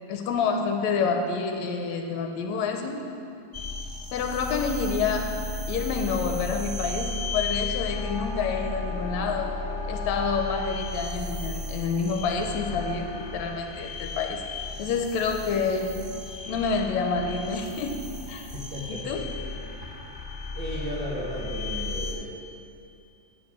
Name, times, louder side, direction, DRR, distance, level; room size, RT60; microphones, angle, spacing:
voice 1, 0.1-3.0 4.1-5.4 5.7-9.6 9.8-14.4 14.8-16.0 16.5-18.5 18.9-19.2, left 5 dB, 75° left, 4 dB, 1.9 m, -28 dB
sound 1, 3.5-22.1, left 3 dB, 10° right, 1.7 m, -34 dB
voice 2, 18.5-19.2 20.5-22.3, equal, 55° right, -4 dB, 1.5 m, -35 dB
8.2 x 7.8 x 7.3 m, 2.6 s
omnidirectional pair, 3.4 m